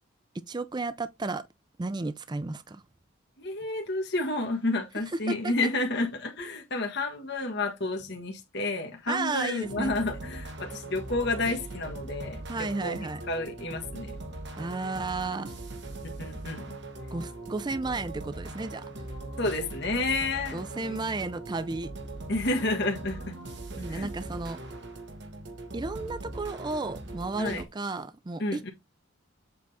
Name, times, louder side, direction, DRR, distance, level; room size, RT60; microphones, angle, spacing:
voice 1, 0.5-1.4 1.8-2.8 5.3-5.7 9.1-9.9 12.5-13.2 14.6-15.5 17.1-18.8 20.5-21.9 23.8-24.6 25.7-28.7, right 3 dB, 20° right, 0.4 m, -33 dB
voice 2, 3.4-14.2 16.2-16.8 19.4-21.0 22.3-23.4 23.8-24.1 27.4-27.6 28.4-28.7, left 2 dB, 55° left, 1.4 m, -30 dB
sound 1, 9.6-27.6, right 2 dB, 55° right, 1.5 m, -40 dB
7.6 x 3.5 x 4.1 m
head